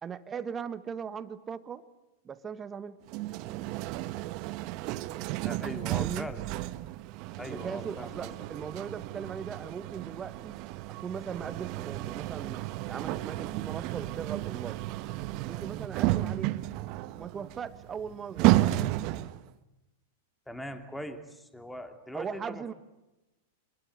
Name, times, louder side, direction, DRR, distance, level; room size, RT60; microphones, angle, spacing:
voice 1, 0.0-1.8 2.2-3.0 5.9-6.3 7.5-10.5 10.9-14.8 15.4-16.6 17.2-18.8 22.1-22.7, right 7 dB, 25° right, 12 dB, 1.6 m, -39 dB
sound 1, 3.1-19.5, right 17 dB, 50° right, 1.2 m, -32 dB
voice 2, 5.4-6.5 7.4-8.3 20.5-22.7, left 1 dB, 5° left, 7 dB, 2.8 m, -41 dB
25.5 x 21.5 x 9.3 m, 0.98 s
hypercardioid pair, 105°, 0 cm